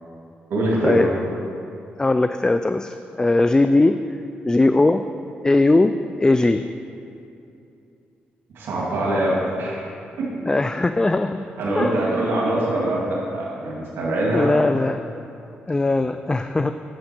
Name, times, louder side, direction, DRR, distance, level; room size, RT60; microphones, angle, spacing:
voice 1, 0.5-1.1 8.5-9.9 10.2-10.5 11.6-14.5, right 1 dB, 80° right, -5 dB, 2.1 m, -23 dB
voice 2, 2.0-4.0 4.5-5.0 5.4-6.6 10.5-11.4 11.8-11.9 14.3-15.0 15.7-16.7, left 2 dB, 20° left, 9 dB, 0.3 m, -19 dB
9.7 x 7.5 x 4.4 m, 2.7 s
cardioid pair, 70°, 4 cm